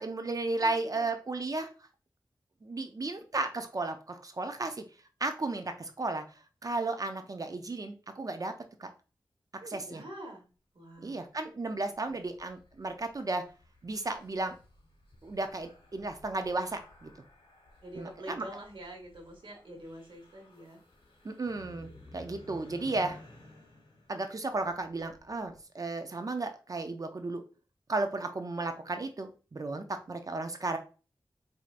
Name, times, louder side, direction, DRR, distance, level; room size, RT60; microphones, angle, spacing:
voice 1, 0.0-1.7 2.6-4.8 5.2-6.2 6.6-8.5 8.8-8.9 9.7-10.0 11.0-13.4 13.8-14.6 15.2-17.1 18.0-18.1 18.4-18.5 21.2-23.2 24.1-27.4 27.9-30.8, right 2 dB, 45° right, 7 dB, 0.5 m, -34 dB
voice 2, 0.6-1.1 9.6-10.5 10.7-11.2 11.9-12.3 17.8-20.8, right 1 dB, 75° right, 1 dB, 1.2 m, -46 dB
sound 1, 11.7-25.6, left 1 dB, 85° left, 1.0 m, -55 dB
4.6 x 2.7 x 2.4 m, 0.35 s
wide cardioid pair, 80°, 9 cm